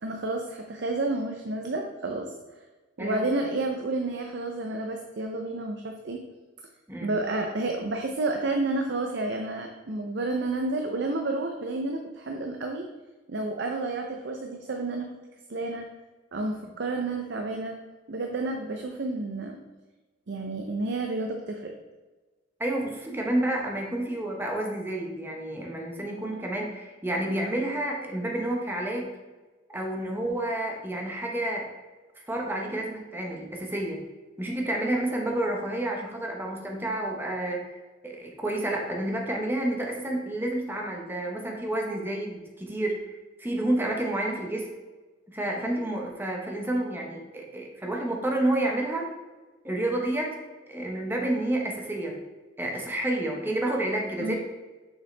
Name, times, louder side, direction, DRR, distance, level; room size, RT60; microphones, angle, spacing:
voice 1, 0.0-2.3 3.0-6.2 7.0-12.9 13.3-15.1 15.5-15.8 16.3-17.8 18.1-19.6 20.3-21.7 54.2-54.4, right 2 dB, 65° right, 3 dB, 0.6 m, -30 dB
voice 2, 3.0-3.3 6.9-7.2 22.6-29.1 29.7-31.7 32.3-34.0 34.4-37.8 38.0-44.7 45.3-49.1 49.6-50.4 50.7-52.2 52.6-54.4, right 1 dB, 10° right, 0 dB, 1.0 m, -30 dB
6.7 x 5.6 x 3.3 m, 1.3 s
head